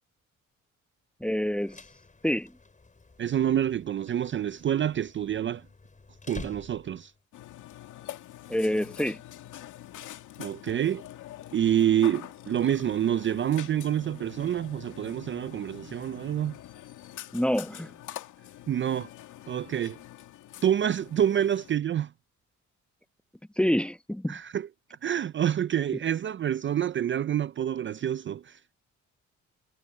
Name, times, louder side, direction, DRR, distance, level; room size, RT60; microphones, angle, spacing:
voice 1, 1.2-1.8 2.2-2.5 8.5-9.2 17.3-17.9 23.6-24.4, equal, 5° left, 1.0 m, -27 dB
sound 1, 1.4-7.2, left 3 dB, 25° left, 7.5 m, -48 dB
voice 2, 3.2-5.7 6.3-7.1 10.4-11.0 11.5-16.6 18.7-19.1 19.5-20.0 20.6-22.1 24.3-24.7 25.0-28.6, right 10 dB, 40° right, 0.5 m, -27 dB
Burping eructation, 7.3-21.8, left 13 dB, 85° left, 2.2 m, -45 dB
cardioid pair, 90°, 30 cm